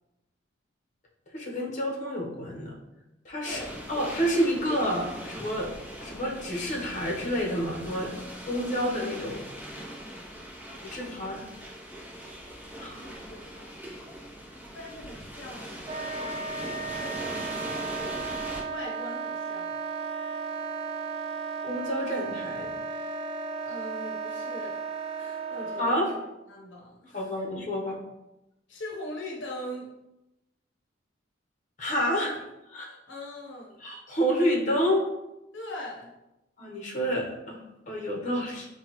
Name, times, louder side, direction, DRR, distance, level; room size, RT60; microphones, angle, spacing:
voice 1, 1.3-2.7 3.2-3.6 3.9-5.7 6.0-8.1 8.4-9.4 10.8-11.4 12.8-13.0 21.6-22.7 25.8-26.1 27.1-28.0 31.8-32.3 32.7-33.0 33.8-35.1 36.6-38.7, equal, 45° left, -1 dB, 0.9 m, -29 dB
voice 2, 3.4-3.7 10.6-11.4 12.7-13.7 14.7-16.4 16.8-18.3 18.7-19.8 23.6-24.8 25.2-26.1 26.5-27.3 28.7-29.9 32.2-32.3 33.1-33.8 35.5-36.1, left 1 dB, 75° left, -2 dB, 0.8 m, -42 dB
sound 1, 3.5-18.6, equal, 10° right, 0.8 m, -41 dB
Wind instrument woodwind instrument, 15.9-26.0, right 4 dB, 30° right, 0.4 m, -34 dB
6.1 x 2.3 x 3.0 m, 0.92 s
head